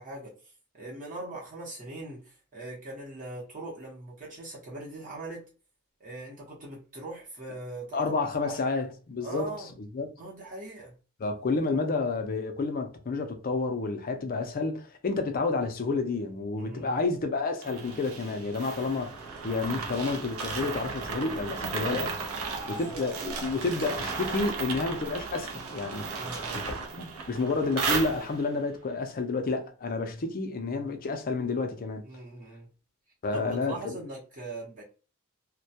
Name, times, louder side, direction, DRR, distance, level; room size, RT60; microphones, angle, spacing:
voice 1, 0.0-5.4 6.0-8.6 9.2-9.7 10.2-10.9 16.6-17.0 22.6-23.0 23.7-23.8 26.2-26.6 32.0-32.7 33.3-34.8, right 2 dB, 40° right, 0.8 m, -41 dB
voice 2, 7.9-9.5 9.9-10.1 11.2-26.0 26.5-32.1 33.2-34.0, left 3 dB, 40° left, 0.4 m, -30 dB
sound 1, 17.6-28.6, right 4 dB, 70° right, 0.5 m, -35 dB
sound 2, 22.4-23.6, left 1 dB, 20° right, 0.5 m, -43 dB
2.2 x 2.1 x 2.7 m
head